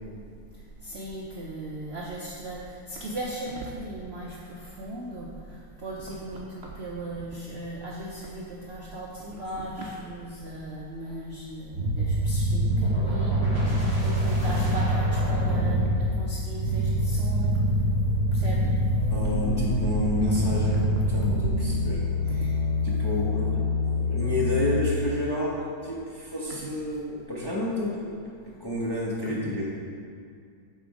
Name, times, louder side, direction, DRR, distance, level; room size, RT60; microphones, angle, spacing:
voice 1, 0.8-17.7 18.3-18.8, right 1 dB, 85° right, -4 dB, 0.5 m, -37 dB
sound 1, 11.7-24.8, equal, 35° right, 2.2 m, -25 dB
voice 2, 19.1-22.6 22.8-25.5 25.8-28.1 28.6-29.7, left 1 dB, 25° left, -6 dB, 0.6 m, -30 dB
7.2 x 4.3 x 4.8 m, 2.3 s
omnidirectional pair, 2.0 m